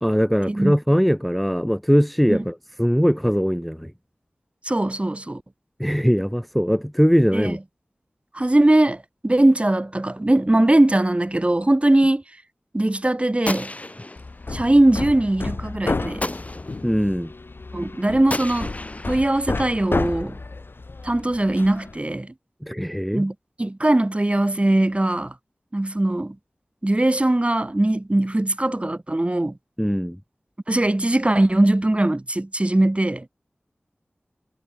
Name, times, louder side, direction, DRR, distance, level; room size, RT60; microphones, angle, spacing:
voice 1, 0.0-3.9 5.8-7.6 16.8-17.3 22.6-23.3 29.8-30.2, equal, ahead, 1.8 m, -21 dB
voice 2, 4.6-5.4 7.3-7.6 8.3-12.2 12.7-13.7 14.5-16.3 17.7-18.7 19.1-20.4 21.0-22.3 23.1-25.3 25.7-26.4 26.8-29.5 30.7-33.3, right 1 dB, 30° right, 4.1 m, -20 dB
Gunshot gunfire, 13.5-14.6 16.2-17.0 18.3-20.0, left 2 dB, 35° left, 4.1 m, -33 dB
Hammer, 14.2-22.0, left 3 dB, 65° left, 4.2 m, -31 dB
cardioid pair, 40°, 4 cm